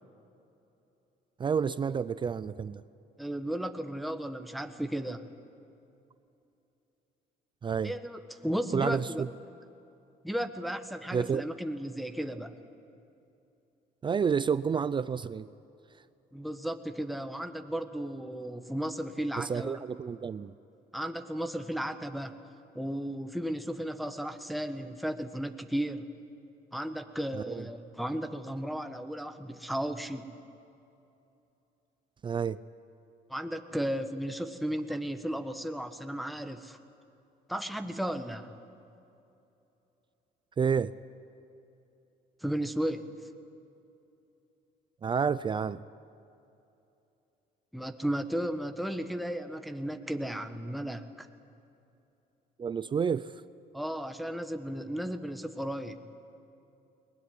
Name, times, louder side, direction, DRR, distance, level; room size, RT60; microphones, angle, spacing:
voice 1, 1.4-2.8 7.6-7.9 8.7-9.3 11.1-11.4 14.0-15.5 19.4-20.5 27.3-27.6 32.2-32.6 40.6-40.9 45.0-45.8 52.6-53.3, right 6 dB, 30° right, 16 dB, 0.4 m, -29 dB
voice 2, 3.2-5.2 7.8-9.2 10.2-12.5 16.3-19.8 20.9-22.4 22.7-26.1 26.7-30.3 33.3-36.8 37.5-38.6 42.4-43.2 47.7-51.3 53.7-56.0, equal, ahead, 7 dB, 1.4 m, -34 dB
21.5 x 20.0 x 9.9 m, 2.8 s
cardioid pair, 110°, 17 cm